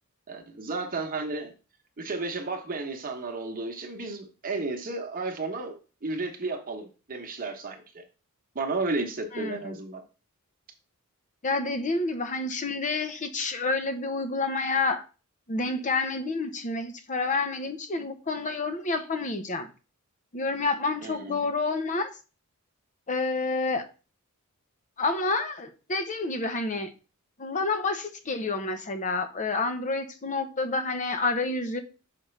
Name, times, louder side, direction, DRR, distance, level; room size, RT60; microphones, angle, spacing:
voice 1, 0.3-1.5 2.0-5.8 6.0-8.0 8.5-10.0 21.0-21.5, right 3 dB, 40° right, 1.0 m, -33 dB
voice 2, 9.3-9.8 11.4-15.0 15.5-19.7 20.3-22.1 23.1-23.8 25.0-26.9 27.4-31.8, left 3 dB, 35° left, 0.7 m, -29 dB
5.8 x 5.0 x 3.2 m
head